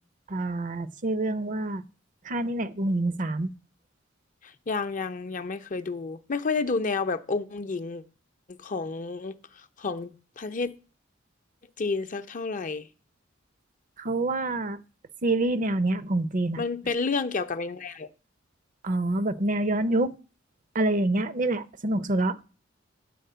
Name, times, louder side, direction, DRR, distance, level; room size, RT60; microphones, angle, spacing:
voice 1, 0.3-1.8 2.2-3.5 14.0-14.8 15.2-16.6 18.8-20.1 20.7-22.4, right 2 dB, 40° right, 0.6 m, -26 dB
voice 2, 4.4-8.0 8.6-9.3 9.8-10.7 11.8-12.9 16.6-18.1, left 4 dB, 45° left, 0.6 m, -30 dB
9.2 x 4.3 x 6.7 m
head